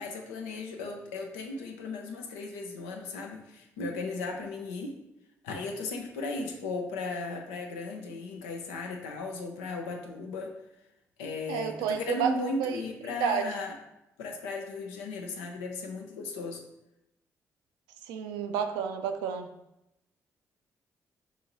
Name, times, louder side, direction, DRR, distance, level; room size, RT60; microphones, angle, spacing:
voice 1, 0.0-5.0 5.4-10.5 11.2-13.8 14.2-16.6, left 3 dB, 90° left, 3 dB, 0.5 m, -36 dB
voice 2, 11.5-12.8 13.2-13.6 18.1-19.5, right 7 dB, 85° right, 6 dB, 0.4 m, -30 dB
5.5 x 2.6 x 2.9 m, 0.87 s
hypercardioid pair, 45°, 7 cm